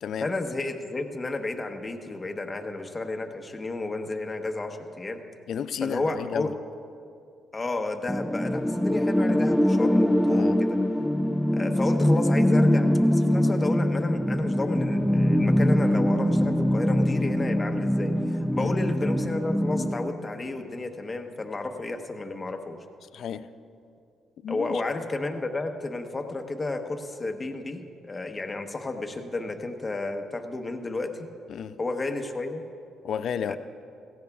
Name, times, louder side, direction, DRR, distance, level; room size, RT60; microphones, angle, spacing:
voice 1, 0.2-5.2 5.8-6.5 7.5-10.8 11.5-22.8 24.5-31.3 31.8-32.6 33.5-33.6, left 2 dB, 25° left, 1.0 m, -32 dB
voice 2, 5.5-6.5 10.3-10.6 18.6-18.7 23.1-23.5 24.4-24.8 31.5-31.8 33.0-33.6, left 8 dB, 65° left, 0.4 m, -32 dB
sound 1, 8.1-20.1, equal, 5° left, 0.5 m, -23 dB
17.5 x 15.5 x 2.4 m
cardioid pair, 90°, 0 cm